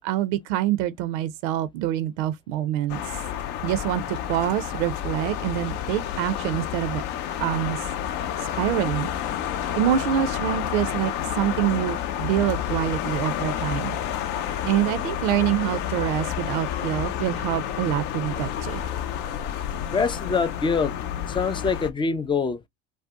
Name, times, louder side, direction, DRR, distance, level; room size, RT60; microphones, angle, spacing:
voice 1, 0.0-3.2 3.6-7.0 7.4-7.9 8.4-9.1 9.7-14.0 14.6-18.8, right 12 dB, 70° right, 0.5 m, -26 dB
sound 1, 2.9-21.9, left 10 dB, 60° left, 0.6 m, -30 dB
voice 2, 19.9-20.9 21.3-22.6, left 5 dB, 15° left, 0.3 m, -24 dB
2.6 x 2.1 x 3.4 m
hypercardioid pair, 85°, 35 cm